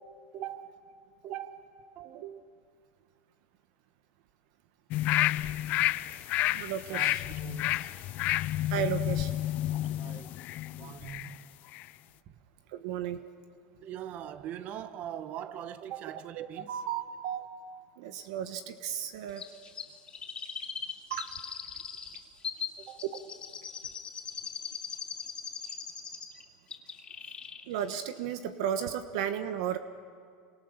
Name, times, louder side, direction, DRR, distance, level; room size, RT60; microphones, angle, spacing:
voice 1, 0.3-0.8 1.2-2.3 6.1-6.2 6.9-7.9 9.9-10.3 10.7-11.5 12.3-12.4 13.8-16.8 22.8-23.0 27.2-27.3, right 10 dB, 50° right, 1.5 m, -42 dB
sound 1, 4.9-11.3 11.7-11.8, left 15 dB, 55° left, 0.6 m, -30 dB
voice 2, 6.5-7.2 8.7-9.3 12.7-13.2 16.4-17.5 18.0-19.5 21.1-21.3 27.7-29.8, right 9 dB, 70° right, 1.3 m, -34 dB
Chirp tweet, 19.4-26.4 26.7-27.6 27.9-28.0, left 6 dB, 30° left, 3.6 m, -40 dB
29.0 x 26.0 x 6.9 m
hypercardioid pair, 100°, 3 cm